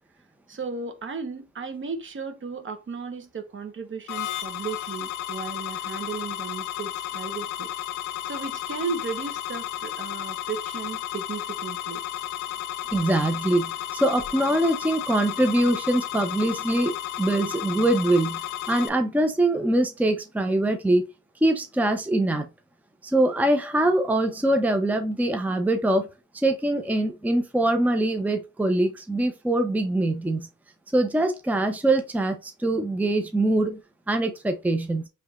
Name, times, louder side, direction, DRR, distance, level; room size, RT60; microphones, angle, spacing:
voice 1, 0.5-7.7 8.3-12.0, right 5 dB, 40° right, 1.1 m, -35 dB
sound 1, 4.1-18.9, left 12 dB, 75° left, 0.6 m, -33 dB
voice 2, 12.9-18.4 18.7-21.0 21.4-22.5 23.0-26.1 26.3-30.5 30.9-33.8 34.1-35.1, right 1 dB, 5° right, 0.7 m, -23 dB
4.8 x 3.4 x 2.5 m
cardioid pair, 90°, 30 cm